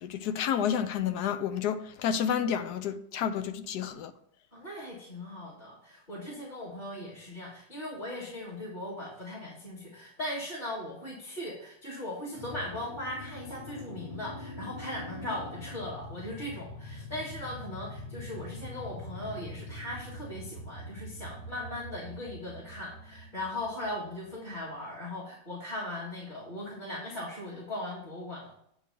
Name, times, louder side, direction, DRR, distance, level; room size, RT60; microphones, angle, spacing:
voice 1, 0.0-4.1, left 8 dB, 70° left, 1.1 m, -30 dB
voice 2, 4.5-28.5, left 1 dB, 25° left, 1.9 m, -39 dB
sound 1, 12.3-24.6, left 1 dB, 45° left, 1.8 m, -44 dB
9.0 x 3.2 x 6.7 m
omnidirectional pair, 2.0 m